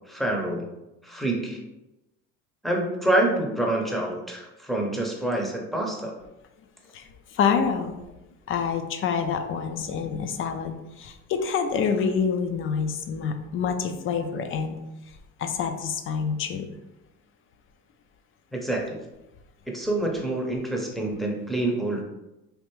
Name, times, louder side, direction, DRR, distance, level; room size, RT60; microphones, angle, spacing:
voice 1, 0.1-0.6 1.0-1.6 2.6-6.2 18.5-19.0 19.7-22.0, right 1 dB, ahead, -1 dB, 0.7 m, -27 dB
voice 2, 6.9-8.0 8.5-14.8 15.4-16.6, left 6 dB, 40° left, 7 dB, 0.4 m, -27 dB
3.4 x 2.4 x 3.0 m, 0.96 s
supercardioid pair, 105°, 32 cm